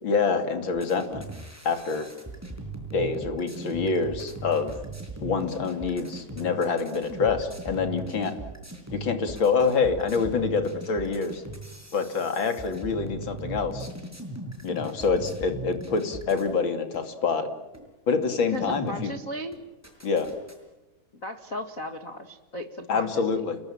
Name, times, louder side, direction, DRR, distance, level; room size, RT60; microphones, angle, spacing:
voice 1, 0.0-1.2 1.6-2.1 2.9-4.7 5.2-8.4 8.9-11.4 11.9-13.9 14.6-17.5 18.1-19.2 20.0-20.3 22.9-23.6, left 5 dB, 35° left, 7 dB, 2.7 m, -26 dB
sound 1, 0.7-16.6 16.9-17.0 17.7-17.8 18.2-19.2 19.5-20.6, right 2 dB, 5° right, 6.1 m, -39 dB
voice 2, 18.5-19.5 21.2-23.4, left 1 dB, 75° left, 5 dB, 0.7 m, -36 dB
29.5 x 21.5 x 8.8 m, 1.0 s
omnidirectional pair, 4.8 m